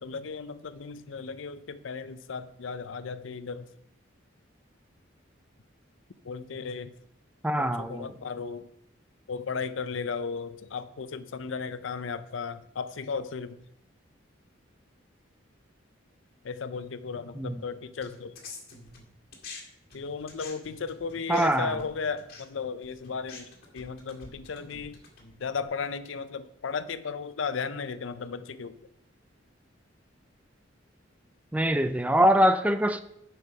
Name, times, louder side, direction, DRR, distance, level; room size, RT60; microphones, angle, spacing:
voice 1, 0.0-3.7 6.2-6.9 7.6-8.7 9.3-13.6 16.4-18.3 19.9-23.5 23.7-25.0 25.4-28.8, left 5 dB, 75° left, 13 dB, 0.5 m, -35 dB
voice 2, 7.4-8.1 17.4-17.6 21.3-21.8 31.5-33.0, equal, 5° right, 11 dB, 0.4 m, -23 dB
sound 1, 18.0-19.6 19.9-25.6, left 4 dB, 50° left, 2.0 m, -47 dB
11.5 x 4.6 x 4.8 m, 0.77 s
head